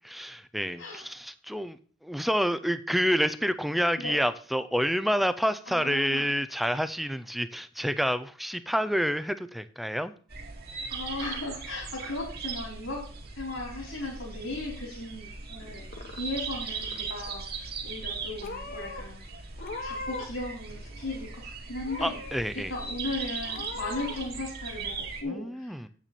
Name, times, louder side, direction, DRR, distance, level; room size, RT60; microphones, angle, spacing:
voice 1, 0.0-10.1 22.0-22.7 25.3-25.9, equal, ahead, 12 dB, 0.5 m, -28 dB
voice 2, 5.7-6.3 10.9-13.0 13.4-15.9 16.1-19.2 19.8-22.2 22.5-25.8, left 2 dB, 75° left, -3 dB, 4.3 m, -36 dB
sound 1, 10.3-25.2, right 4 dB, 50° right, 2.1 m, -39 dB
Purr / Meow, 15.6-16.5 16.8-17.3 18.0-18.2 18.4-19.0 19.5-20.4 20.7-21.4 21.8-22.4 22.9-23.0 23.4-24.2, left 3 dB, 45° left, 1.3 m, -40 dB
9.0 x 8.7 x 4.2 m, 0.41 s
head